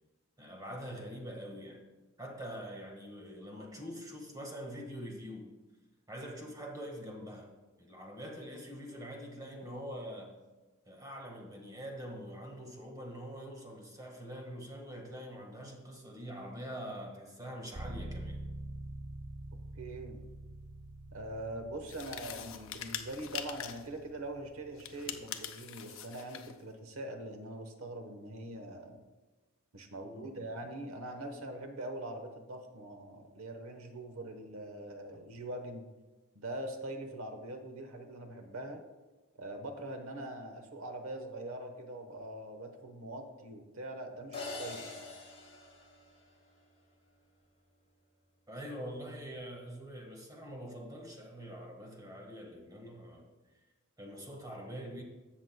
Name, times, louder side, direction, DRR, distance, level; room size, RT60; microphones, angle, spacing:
voice 1, 0.4-1.8 2.2-5.5 6.1-7.5 7.8-10.4 10.8-18.4 30.0-30.5 48.5-53.3 54.0-55.0, equal, 20° right, 1 dB, 1.5 m, -44 dB
sound 1, 17.7-25.5, right 1 dB, 35° right, 0.6 m, -46 dB
voice 2, 19.7-20.2 21.1-29.0 29.7-35.8 36.3-38.8 39.4-44.9, right 1 dB, 75° right, 5 dB, 1.1 m, -43 dB
sound 2, 21.9-23.9 24.8-26.6, left 9 dB, 65° left, 0.6 m, -43 dB
sound 3, 44.3-46.7, left 3 dB, 30° left, 2.5 m, -44 dB
16.0 x 6.2 x 2.2 m, 1.2 s
head